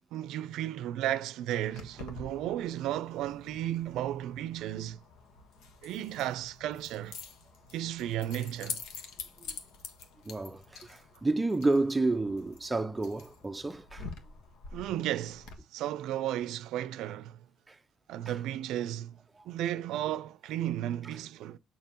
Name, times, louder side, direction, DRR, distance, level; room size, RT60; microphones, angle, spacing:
voice 1, 0.1-5.0 5.8-7.2 7.7-8.8 14.7-17.4 18.1-19.2 19.4-21.6, right 12 dB, 80° right, 0.5 m, -34 dB
Keys jangling, 1.7-15.5, left 5 dB, 80° left, 1.3 m, -47 dB
voice 2, 10.2-14.1 17.7-17.8 18.3-18.4 19.4-19.5, right 2 dB, 10° right, 0.5 m, -30 dB
6.7 x 5.7 x 3.0 m
cardioid pair, 130°, 0 cm